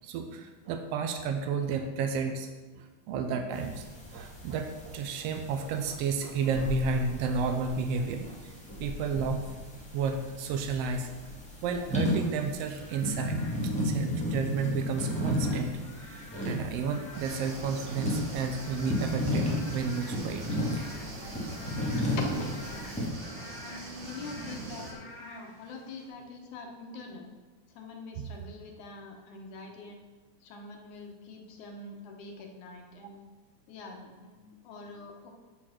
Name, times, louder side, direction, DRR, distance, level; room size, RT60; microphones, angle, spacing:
voice 1, 0.0-3.9 4.1-8.5 8.8-9.4 9.9-11.1 11.6-20.5, right 5 dB, 85° right, 6 dB, 1.4 m, -32 dB
sound 1, 3.5-23.1, left 1 dB, 5° left, 1.1 m, -34 dB
Frog / Rain, 12.6-26.1, left 2 dB, 50° left, 2.3 m, -50 dB
sound 2, 17.1-24.9, right 2 dB, 50° right, 1.6 m, -43 dB
voice 2, 22.2-23.1 23.6-27.3 27.7-30.0 30.4-33.2 33.7-35.3, left 3 dB, 80° left, 1 dB, 2.5 m, -44 dB
9.4 x 4.5 x 5.7 m, 1.3 s
omnidirectional pair, 3.5 m